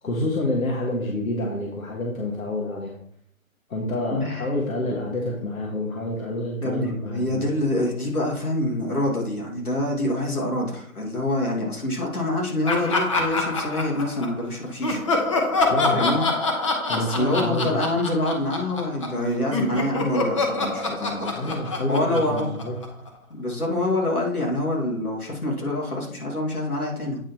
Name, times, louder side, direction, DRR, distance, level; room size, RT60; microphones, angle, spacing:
voice 1, 0.0-2.9 3.7-7.4 15.7-16.1 16.9-17.8 21.4-22.8, left 1 dB, 70° left, -1 dB, 1.7 m, -28 dB
voice 2, 4.1-4.5 6.6-15.0 15.9-16.2 17.0-22.5 23.3-27.2, left 1 dB, 85° left, -2 dB, 2.6 m, -26 dB
Laughter, 12.7-14.4 14.8-19.2 19.5-23.1, left 3 dB, 20° left, 0.8 m, -26 dB
8.7 x 4.4 x 4.4 m, 0.68 s
figure-of-eight pair, 140°, 43 cm